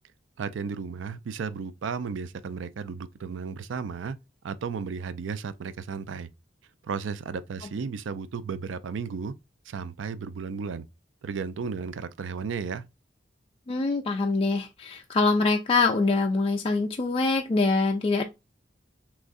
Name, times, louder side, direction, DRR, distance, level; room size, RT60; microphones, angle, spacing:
voice 1, 0.4-4.2 4.4-6.3 6.8-9.3 9.7-10.9 11.2-12.8, right 5 dB, 85° right, 0.4 m, -34 dB
voice 2, 13.7-18.2, left 3 dB, 30° left, 0.3 m, -24 dB
3.6 x 3.0 x 2.5 m
head